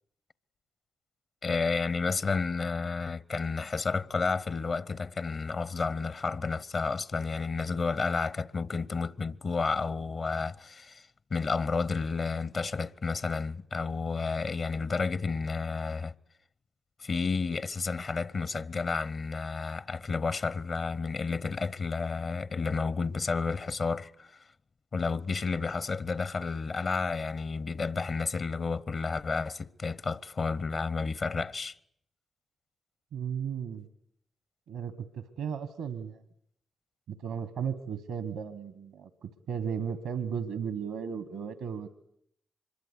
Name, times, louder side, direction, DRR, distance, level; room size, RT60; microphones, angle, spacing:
voice 1, 1.4-16.1 17.0-24.4 24.9-31.7, left 4 dB, 55° left, 0.9 m, -31 dB
voice 2, 33.1-33.9 34.7-36.2 37.1-41.9, right 7 dB, 80° right, 1.3 m, -35 dB
25.0 x 22.0 x 8.3 m
hypercardioid pair, 40°, 0 cm